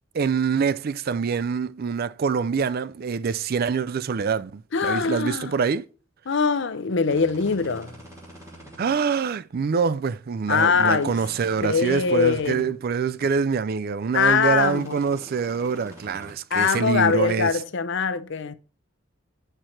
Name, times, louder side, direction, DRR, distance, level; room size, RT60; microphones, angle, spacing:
voice 1, 0.1-5.9 8.8-17.5, right 5 dB, 50° right, 0.4 m, -25 dB
voice 2, 4.7-5.5 6.3-8.0 10.5-11.2 11.6-12.7 14.1-15.0 16.5-18.5, left 5 dB, 65° left, 0.6 m, -22 dB
sound 1, 7.0-8.9 10.7-12.6 14.4-16.3, equal, 15° right, 2.8 m, -45 dB
5.8 x 4.5 x 6.3 m
head